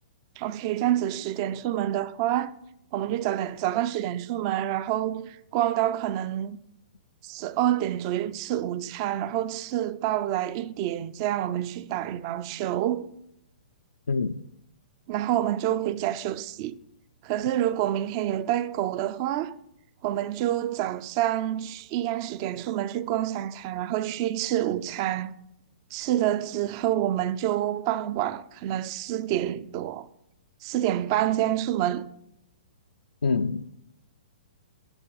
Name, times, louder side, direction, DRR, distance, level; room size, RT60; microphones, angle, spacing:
voice 1, 0.4-2.5 2.9-6.6 7.2-13.1 15.1-16.8 17.2-19.5 20.0-25.3 25.9-30.1 30.6-32.1, right 12 dB, 35° right, 0.4 m, -27 dB
voice 2, 14.1-14.4 33.2-33.6, left 4 dB, 70° left, 0.4 m, -25 dB
9.1 x 7.6 x 5.4 m
figure-of-eight pair, 115°, 5 cm